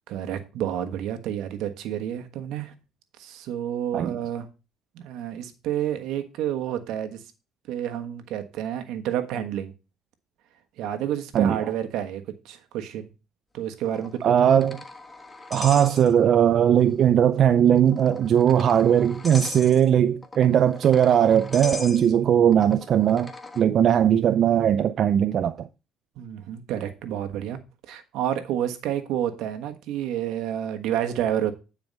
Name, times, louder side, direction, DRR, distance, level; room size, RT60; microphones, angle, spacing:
voice 1, 0.1-2.7 3.2-4.5 4.9-7.2 7.7-9.7 10.8-13.1 13.5-14.3 26.2-27.6 27.9-31.5, right 10 dB, 75° right, 1.3 m, -29 dB
sound 1, 13.9-16.5 16.8-16.9 17.8-23.6, left 3 dB, 15° left, 1.3 m, -39 dB
voice 2, 14.2-14.8 15.5-25.7, right 9 dB, 55° right, 0.5 m, -19 dB
9.3 x 4.8 x 5.3 m
cardioid pair, 95°, 0 cm